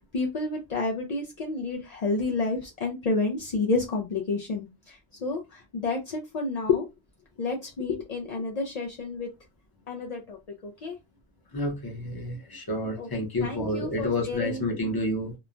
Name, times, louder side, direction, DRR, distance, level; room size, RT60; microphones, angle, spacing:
voice 1, 0.1-6.9 7.4-9.3 9.9-10.4 10.6-11.0 13.0-13.1 13.4-14.6, left 3 dB, 60° left, 0.4 m, -30 dB
voice 2, 11.5-15.3, left 1 dB, 25° left, 0.7 m, -29 dB
3.0 x 2.1 x 2.4 m
omnidirectional pair, 1.1 m